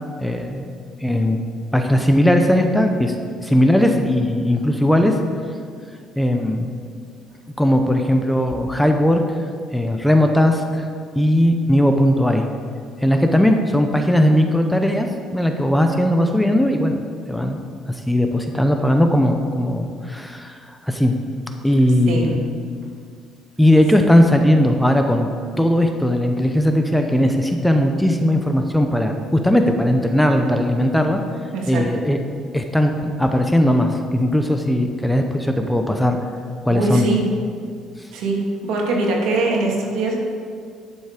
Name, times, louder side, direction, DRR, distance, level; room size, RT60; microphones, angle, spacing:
voice 1, 0.2-0.6 1.0-1.4 1.7-3.1 3.4-5.2 6.2-6.7 7.6-9.2 9.7-10.9 11.2-12.5 13.0-17.0 17.3-17.6 17.9-21.1 21.6-22.4 23.6-25.3 25.6-31.2 31.7-32.2 32.5-36.2 36.6-37.1, left 1 dB, 5° left, 5 dB, 0.7 m, -18 dB
voice 2, 31.5-31.8 36.7-37.2 38.1-40.2, right 2 dB, 75° right, -1 dB, 2.3 m, -22 dB
11.5 x 7.0 x 5.0 m, 2.2 s
cardioid pair, 130°, 0 cm